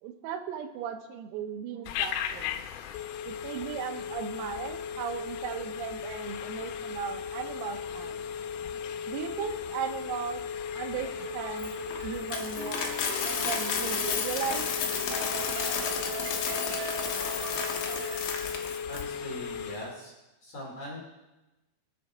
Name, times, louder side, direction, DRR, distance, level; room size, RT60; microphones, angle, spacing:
voice 1, 0.0-2.6 3.3-8.2 9.1-10.4 10.8-11.7 12.0-12.9 13.4-14.7, right 8 dB, 90° right, 6 dB, 3.8 m, -37 dB
Telephone, 1.9-20.0, left 7 dB, 85° left, 3.5 m, -36 dB
sound 1, 11.0-18.3, right 6 dB, 75° right, 3.2 m, -41 dB
Coin (dropping), 11.6-19.0, left 6 dB, 70° left, 2.2 m, -32 dB
voice 2, 18.9-20.1 20.4-21.0, equal, 40° left, -3 dB, 2.8 m, -41 dB
24.5 x 8.4 x 4.3 m, 1.1 s
omnidirectional pair, 6.0 m